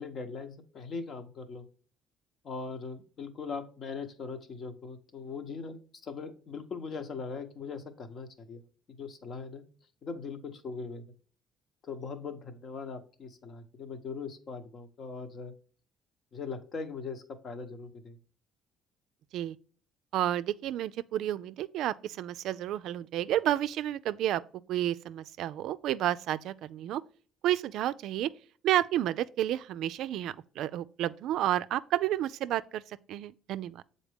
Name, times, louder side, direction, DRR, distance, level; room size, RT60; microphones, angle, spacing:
voice 1, 0.0-1.6 2.4-8.6 9.0-9.6 10.0-11.0 11.8-15.5 16.3-18.2, left 4 dB, 50° left, 1.0 m, -40 dB
voice 2, 20.1-24.4 24.7-27.0 27.4-28.3 28.6-32.8 33.1-33.8, right 12 dB, 75° right, 0.3 m, -31 dB
7.2 x 4.0 x 3.4 m
cardioid pair, 95°, 0 cm